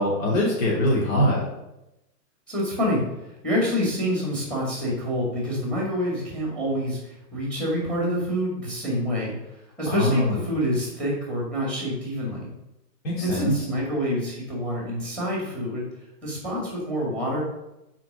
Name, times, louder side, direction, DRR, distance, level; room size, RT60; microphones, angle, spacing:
voice 1, 0.0-1.4 9.9-10.4 13.0-13.5, left 1 dB, 50° left, -5 dB, 3.1 m, -22 dB
voice 2, 2.5-3.0 3.4-7.0 7.3-9.3 9.8-12.5 13.2-15.8 16.2-17.4, equal, ahead, -3 dB, 2.1 m, -27 dB
5.8 x 4.7 x 6.2 m, 0.91 s
hypercardioid pair, 160°, 49 cm